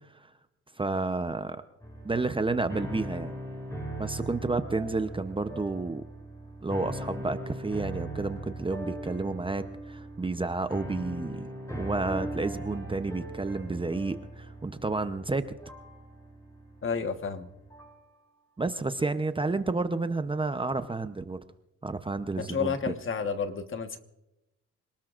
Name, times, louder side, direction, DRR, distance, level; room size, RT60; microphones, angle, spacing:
voice 1, 0.8-1.6 2.0-3.3 4.0-6.0 6.6-15.4 18.6-21.4 21.8-22.7, right 3 dB, 15° right, 10 dB, 0.8 m, -31 dB
sound 1, 1.8-18.1, right 1 dB, 10° left, 7.0 m, -40 dB
voice 2, 16.8-17.5 22.4-24.0, left 5 dB, 40° left, 7 dB, 1.4 m, -31 dB
26.5 x 19.0 x 2.5 m, 0.95 s
cardioid pair, 90°, 30 cm